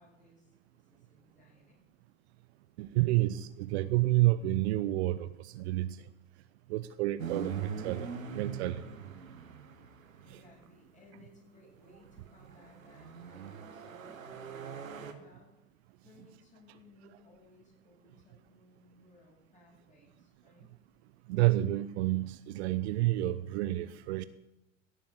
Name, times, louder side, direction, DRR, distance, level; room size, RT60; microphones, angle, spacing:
voice 1, 0.0-1.9 10.2-15.5 16.0-20.7, left 2 dB, 20° left, -2 dB, 7.1 m, -61 dB
voice 2, 2.8-6.0 6.7-8.1 8.3-8.8 21.3-24.2, right 16 dB, 55° right, 14 dB, 0.7 m, -29 dB
sound 1, 7.2-10.7 11.8-15.1, right 6 dB, 80° right, 1.6 m, -42 dB
17.0 x 7.1 x 7.8 m, 0.93 s
figure-of-eight pair, 85°, 40 cm